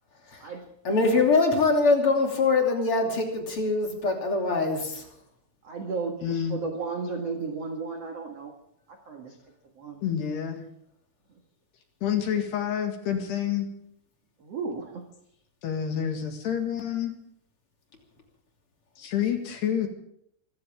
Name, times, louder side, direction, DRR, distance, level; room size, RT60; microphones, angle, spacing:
voice 1, 0.8-5.0, left 3 dB, 35° left, 1 dB, 2.9 m, -23 dB
voice 2, 5.6-8.5 8.9-9.3 9.8-10.0 14.4-15.0, right 4 dB, 65° right, 2 dB, 1.6 m, -34 dB
voice 3, 6.2-6.6 10.0-10.7 12.0-13.7 15.6-17.1 19.0-19.9, left 9 dB, 60° left, 4 dB, 3.7 m, -28 dB
25.0 x 15.0 x 3.7 m, 0.73 s
omnidirectional pair, 5.9 m